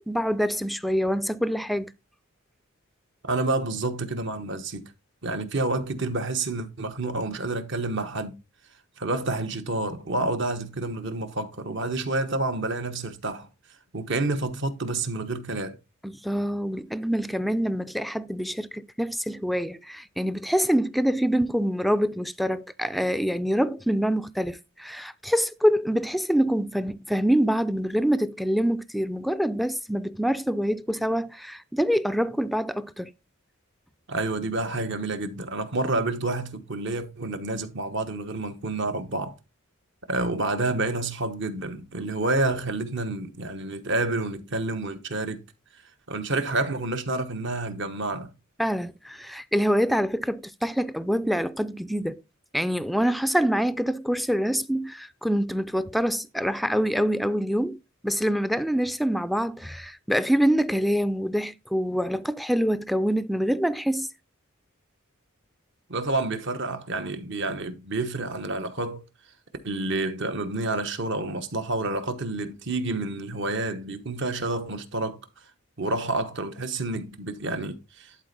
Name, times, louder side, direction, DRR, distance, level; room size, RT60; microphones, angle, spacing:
voice 1, 0.0-1.9 16.0-33.1 48.6-52.2 52.5-64.1, equal, ahead, 0.4 m, -25 dB
voice 2, 3.2-4.8 5.2-8.4 9.0-13.5 13.9-15.8 34.1-39.3 40.1-45.4 46.1-48.3 65.9-69.0 69.6-75.2 75.8-78.2, right 2 dB, 60° right, 1.1 m, -29 dB
11.5 x 4.4 x 4.0 m
head